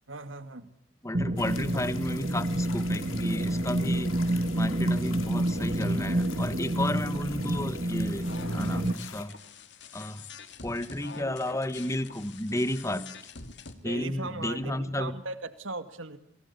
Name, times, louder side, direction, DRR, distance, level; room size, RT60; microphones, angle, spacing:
voice 1, 0.1-0.7 12.9-13.0 13.7-16.2, right 3 dB, 80° right, 10 dB, 2.2 m, -38 dB
voice 2, 1.0-9.4 9.9-10.2 10.6-13.1 13.8-15.2, left 1 dB, 15° left, 13 dB, 1.3 m, -33 dB
sound 1, 1.1-8.9, right 1 dB, 45° right, 2.2 m, -28 dB
sound 2, 1.4-9.2, left 6 dB, 85° left, 5.1 m, -46 dB
sound 3, 8.2-13.7, left 4 dB, 60° left, 2.7 m, -45 dB
29.0 x 23.0 x 8.4 m, 0.68 s
head